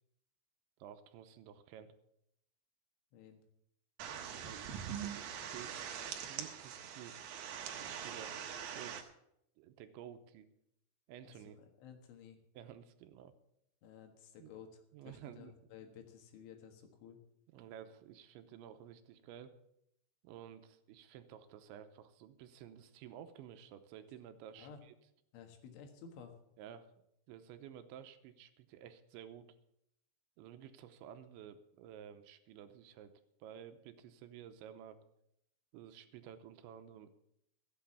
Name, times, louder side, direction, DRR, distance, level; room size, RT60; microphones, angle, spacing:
voice 1, 0.8-1.9 4.4-5.8 6.3-7.2 7.8-8.4 8.7-9.1 9.6-10.5 11.1-11.6 12.5-13.3 14.4-14.5 14.9-15.5 17.5-19.6 20.2-24.9 26.6-26.9 27.3-29.5 30.4-33.1 33.4-35.0 35.7-37.1, right 9 dB, 85° right, 9 dB, 3.1 m, -52 dB
sound 1, 4.0-9.0, right 8 dB, 65° right, 2.6 m, -43 dB
voice 2, 11.4-12.4 13.8-17.2 24.6-24.8 25.3-26.4, left 7 dB, 85° left, 5 dB, 4.1 m, -54 dB
14.5 x 8.5 x 7.2 m, 0.77 s
omnidirectional pair, 5.4 m